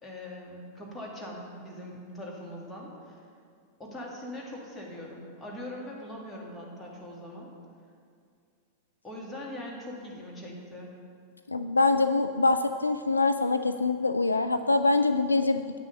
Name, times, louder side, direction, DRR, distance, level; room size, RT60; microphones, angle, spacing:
voice 1, 0.0-3.2 3.8-7.5 9.0-10.9, left 1 dB, 10° left, -3 dB, 2.3 m, -41 dB
voice 2, 11.5-15.6, left 3 dB, 80° left, 9 dB, 0.3 m, -24 dB
9.4 x 6.3 x 6.8 m, 2.2 s
figure-of-eight pair, 90°, 0 cm